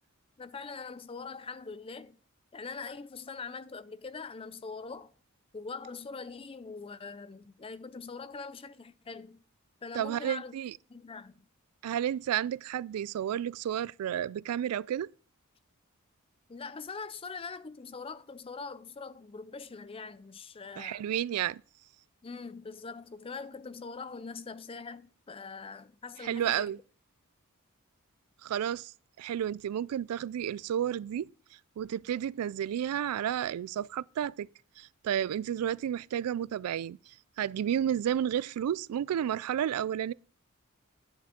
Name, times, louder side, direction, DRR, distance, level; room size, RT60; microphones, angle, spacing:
voice 1, 0.4-2.2 2.5-5.1 5.5-9.4 9.8-10.6 10.9-11.4 16.5-21.1 22.2-26.8, left 4 dB, 25° left, 0.4 m, -43 dB
voice 2, 9.9-10.7 11.8-15.1 20.8-21.6 26.2-26.8 28.4-28.9 29.2-31.3 31.8-34.5 34.8-37.0 37.4-40.1, right 10 dB, 85° right, 0.3 m, -31 dB
11.0 x 7.2 x 3.6 m
head